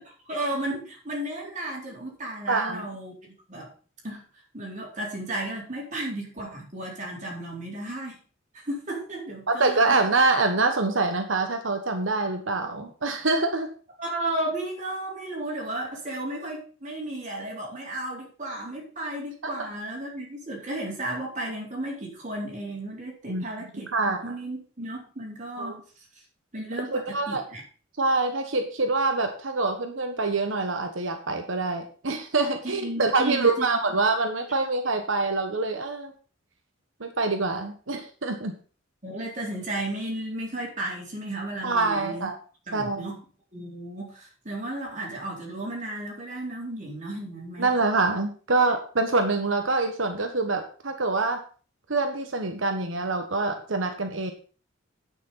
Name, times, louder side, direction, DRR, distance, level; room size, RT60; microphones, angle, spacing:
voice 1, 0.2-3.7 4.0-4.2 4.5-8.2 8.5-10.0 14.0-25.8 26.2-26.3 26.5-27.6 32.6-33.7 39.0-42.3 42.7-43.2 43.5-47.7, right 1 dB, 40° right, -2 dB, 4.1 m, -34 dB
voice 2, 2.5-2.8 9.5-13.7 19.6-19.7 23.3-23.5 23.7-24.3 25.6-25.8 26.9-27.4 28.0-36.1 37.0-38.5 41.6-42.3 42.7-43.1 47.6-51.4 51.9-54.3, right 3 dB, 70° right, 5 dB, 1.3 m, -25 dB
9.6 x 6.3 x 5.7 m, 0.39 s
head